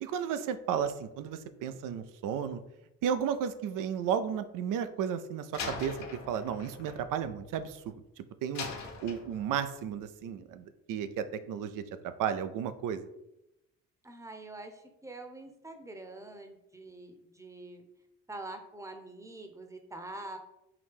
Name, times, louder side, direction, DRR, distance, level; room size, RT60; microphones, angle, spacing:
voice 1, 0.0-2.6 3.0-7.8 8.4-8.6 9.0-11.8 12.2-13.0, right 8 dB, 70° right, 12 dB, 0.5 m, -33 dB
Slam, 5.5-8.0 8.5-9.8, left 4 dB, 55° left, 1.0 m, -42 dB
voice 2, 14.0-17.8 18.3-20.4, right 2 dB, 10° right, 5 dB, 0.8 m, -45 dB
4.8 x 2.6 x 3.5 m, 0.87 s
supercardioid pair, 60°, 34 cm